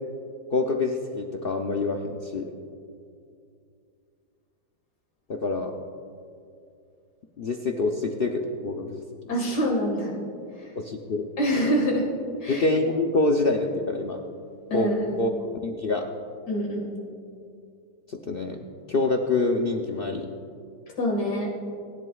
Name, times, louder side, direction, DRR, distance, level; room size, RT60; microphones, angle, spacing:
voice 1, 0.5-2.5 5.3-5.7 7.4-9.0 10.8-11.3 12.5-14.2 14.7-14.9 15.2-15.3 15.6-16.1 18.1-18.6 18.9-20.3, left 3 dB, 60° left, 2 dB, 0.6 m, -26 dB
voice 2, 9.3-10.2 10.6-10.7 11.4-12.1 12.4-12.7 14.7-15.3 16.5-17.0 21.0-21.5, equal, 80° left, -3 dB, 2.5 m, -26 dB
22.0 x 11.0 x 2.4 m, 2.5 s
omnidirectional pair, 1.8 m